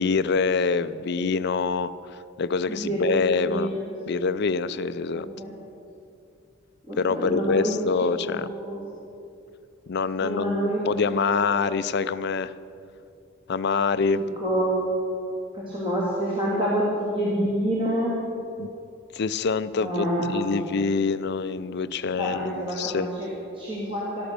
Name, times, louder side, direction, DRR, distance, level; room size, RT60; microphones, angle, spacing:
voice 1, 0.0-1.9 2.4-3.7 4.1-5.3 7.0-8.5 9.9-12.5 13.5-14.2 18.6-18.7 19.1-23.1, left 4 dB, 55° left, 14 dB, 0.5 m, -25 dB
voice 2, 2.7-3.9 5.1-5.6 6.9-8.9 10.2-11.4 14.4-14.8 15.5-18.1 19.8-20.7 22.0-24.3, right 1 dB, 25° right, -6 dB, 2.1 m, -28 dB
13.0 x 12.5 x 6.8 m, 2.6 s
head